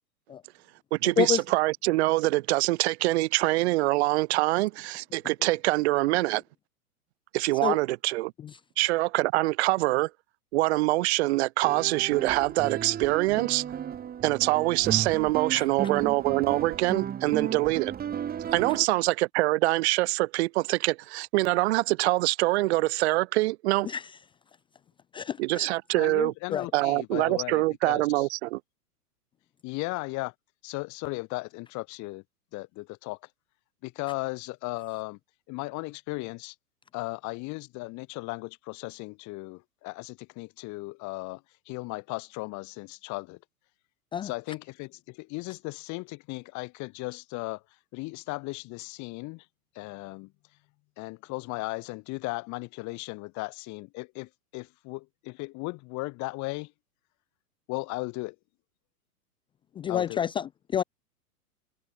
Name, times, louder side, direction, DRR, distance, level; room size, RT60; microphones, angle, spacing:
voice 1, 0.9-6.4 7.3-8.3 8.8-10.1 10.5-13.6 14.2-17.9 18.5-23.9 25.4-26.3 26.7-28.6, right 20 dB, 45° right, 1.1 m, -25 dB
sound 1, 11.6-18.9, right 9 dB, 20° right, 3.0 m, -34 dB
voice 2, 25.1-25.7 26.5-26.7 44.1-44.3 59.8-60.8, left 9 dB, 10° left, 0.5 m, -28 dB
voice 3, 25.9-28.3 29.6-30.3 30.6-32.2 32.5-33.2 33.8-35.2 35.5-36.5 36.9-43.4 44.2-47.6 47.9-49.4 49.7-50.3 51.0-56.7 57.7-58.4 59.9-60.2, left 25 dB, 35° left, 4.7 m, -36 dB
figure-of-eight pair, 105°, 47 cm